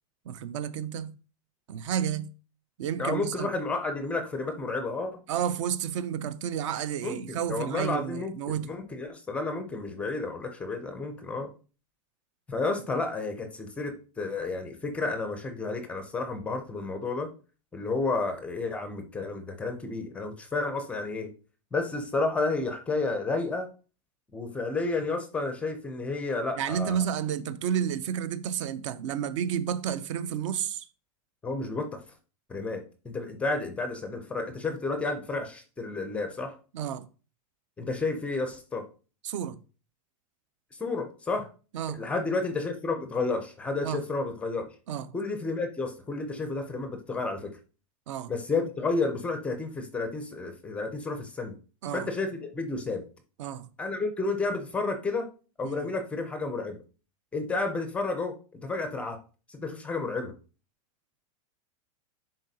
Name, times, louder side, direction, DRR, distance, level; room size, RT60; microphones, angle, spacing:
voice 1, 0.3-1.2 1.7-2.3 2.8-3.5 5.3-8.7 26.6-30.9 36.7-37.1 39.2-39.6 41.7-42.0 43.8-44.0 44.9-45.1 48.1-48.3 51.8-52.1 53.4-53.7 55.6-55.9, right 9 dB, 55° right, 0.5 m, -31 dB
voice 2, 3.0-5.2 7.0-11.5 12.5-17.3 17.7-21.3 21.7-23.7 24.3-27.0 31.4-32.0 32.5-36.5 37.8-38.9 40.8-41.5 41.9-44.7 45.1-47.5 48.3-51.6 51.9-53.0 53.8-55.3 55.6-56.8 57.3-59.2 59.5-60.3, left 3 dB, 5° left, 0.4 m, -31 dB
10.0 x 3.8 x 2.7 m
supercardioid pair, 175°, 18 cm